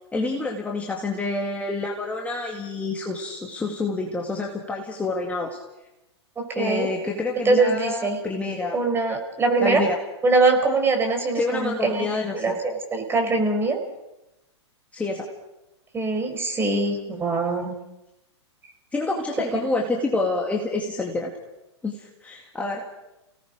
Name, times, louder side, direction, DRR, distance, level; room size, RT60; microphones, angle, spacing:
voice 1, 0.1-5.6 6.5-8.8 9.6-10.0 11.3-12.4 14.9-15.3 18.9-21.3 21.8-22.8, left 3 dB, 10° left, 0 dB, 2.1 m, -28 dB
voice 2, 6.4-6.9 7.4-8.2 8.7-9.8 10.2-13.8 15.9-17.7, right 3 dB, 15° right, 4 dB, 4.5 m, -23 dB
30.0 x 18.0 x 5.2 m, 0.94 s
hypercardioid pair, 120°, 15 cm